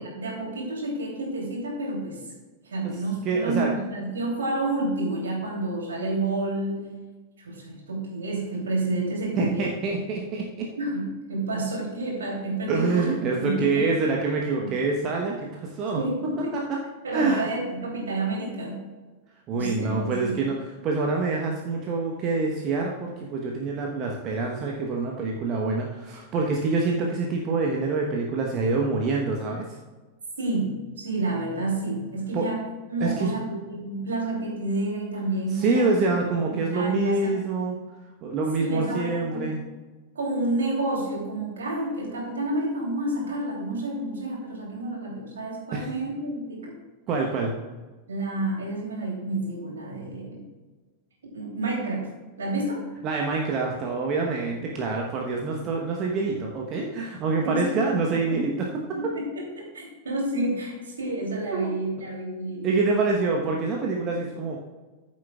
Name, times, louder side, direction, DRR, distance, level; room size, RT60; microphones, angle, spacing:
voice 1, 0.0-2.2 2.6-6.9 7.4-9.7 10.8-13.1 13.4-13.8 14.6-14.7 16.0-16.6 17.0-18.8 19.5-20.4 30.4-32.6 32.9-36.0 36.5-37.3 38.6-39.5 40.1-46.7 48.1-50.4 51.3-52.1 52.4-52.8 57.4-57.6 58.3-58.4 58.9-59.3 59.6-62.7, right 2 dB, 70° right, -2 dB, 3.1 m, -29 dB
voice 2, 3.2-3.7 9.4-10.7 12.7-16.0 16.5-16.8 17.1-17.5 19.5-29.7 32.3-32.5 33.0-33.3 35.5-37.8 38.2-39.6 45.7-45.9 47.1-47.5 53.0-58.7 61.5-61.7 62.6-64.6, right 3 dB, 35° right, 0 dB, 1.0 m, -26 dB
14.0 x 7.3 x 2.4 m, 1.3 s
figure-of-eight pair, 90°, 0 cm